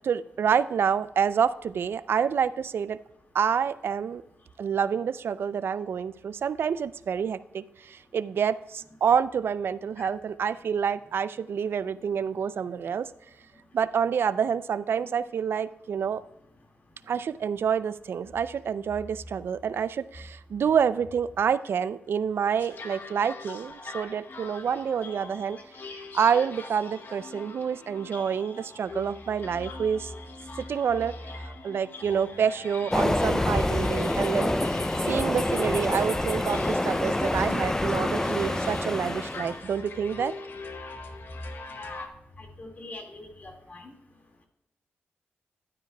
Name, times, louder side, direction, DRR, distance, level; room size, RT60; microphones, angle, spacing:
voice 1, 0.0-3.0 3.3-4.2 4.6-13.1 13.7-16.2 17.1-25.6 26.1-30.1 30.7-31.2 31.4-34.8 35.1-40.3, right 7 dB, 65° right, 16 dB, 0.4 m, -28 dB
sound 1, 22.6-42.1, left 3 dB, 55° left, 0.9 m, -42 dB
Train, 32.9-39.6, left 1 dB, 10° left, 0.4 m, -26 dB
voice 2, 41.8-42.1 42.4-43.9, left 2 dB, 40° left, 2 dB, 2.0 m, -42 dB
11.5 x 9.6 x 2.2 m, 0.84 s
cardioid pair, 70°, 4 cm